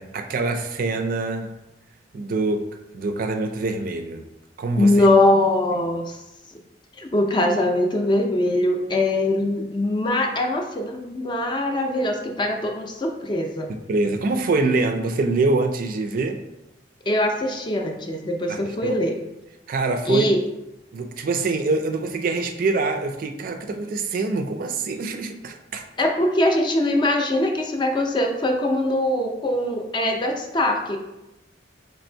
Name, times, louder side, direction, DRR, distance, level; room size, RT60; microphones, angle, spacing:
voice 1, 0.0-1.5 2.1-2.6 2.9-4.2 4.6-5.1 13.9-16.4 18.5-18.9 19.7-20.3 20.9-25.8, right 3 dB, 45° right, 5 dB, 0.3 m, -24 dB
voice 2, 4.8-6.2 7.0-13.7 17.1-19.2 20.1-20.4 26.0-31.0, left 1 dB, 25° left, 3 dB, 0.4 m, -22 dB
3.2 x 2.6 x 4.3 m, 0.94 s
head